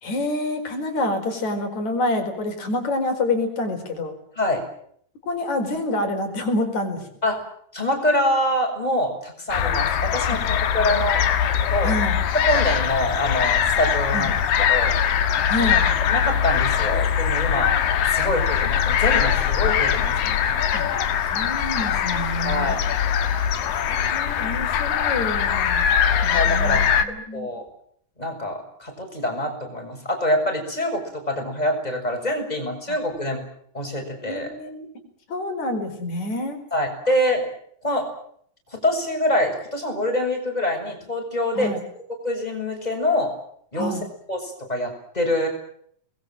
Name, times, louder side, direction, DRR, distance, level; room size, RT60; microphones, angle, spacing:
voice 1, 0.0-4.1 5.3-7.0 11.8-12.2 14.1-14.3 15.4-15.8 18.1-18.4 20.7-20.9 21.3-22.8 23.7-25.9 26.2-27.5 32.9-33.0 34.2-34.9 35.3-36.6 41.5-41.8 43.8-44.0, left 2 dB, 55° left, 5 dB, 5.9 m, -27 dB
voice 2, 7.7-11.2 11.7-11.9 12.5-14.4 14.7-15.0 15.6-15.7 16.1-17.7 18.1-20.7 22.4-22.8 26.3-26.8 27.3-27.7 28.2-33.4 33.7-34.5 36.7-37.4 37.8-38.1 38.7-41.7 42.2-43.3 43.7-43.9 44.3-45.5, left 1 dB, 10° left, 2 dB, 6.9 m, -25 dB
sound 1, 9.5-27.0, left 8 dB, 80° left, 3.2 m, -22 dB
28.5 x 21.5 x 7.7 m, 0.66 s
omnidirectional pair, 4.0 m